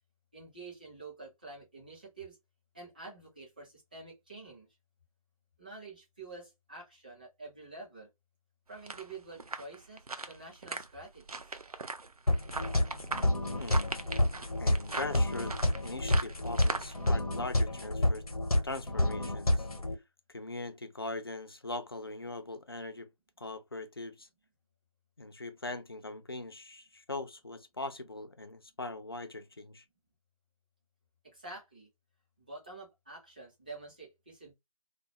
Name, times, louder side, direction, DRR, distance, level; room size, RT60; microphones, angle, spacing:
voice 1, 0.3-2.4 2.7-4.7 5.6-8.1 8.7-11.5 31.3-31.9 32.4-34.5, right 3 dB, 15° right, 0.7 m, -48 dB
sound 1, 8.7-17.1, right 3 dB, 85° right, 0.5 m, -40 dB
sound 2, 12.3-19.9, left 1 dB, 85° left, 0.8 m, -29 dB
voice 2, 13.5-14.0 14.6-18.3 18.6-19.7 20.3-23.1 23.4-24.3 25.2-29.8, left 2 dB, 40° left, 0.4 m, -41 dB
2.3 x 2.3 x 2.7 m
figure-of-eight pair, 160°, 19 cm